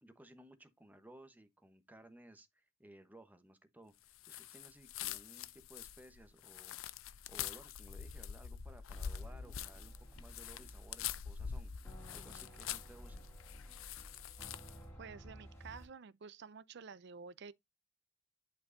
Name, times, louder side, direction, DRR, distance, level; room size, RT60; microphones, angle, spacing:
voice 1, 0.0-6.8 7.3-11.7 12.1-13.2, right 1 dB, 10° right, 1.0 m, -59 dB
sound 1, 4.2-14.8, left 9 dB, 85° left, 0.5 m, -45 dB
sound 2, 8.9-15.9, equal, 10° left, 2.4 m, -53 dB
voice 2, 15.0-17.5, right 5 dB, 55° right, 0.5 m, -51 dB
11.0 x 4.5 x 2.6 m
head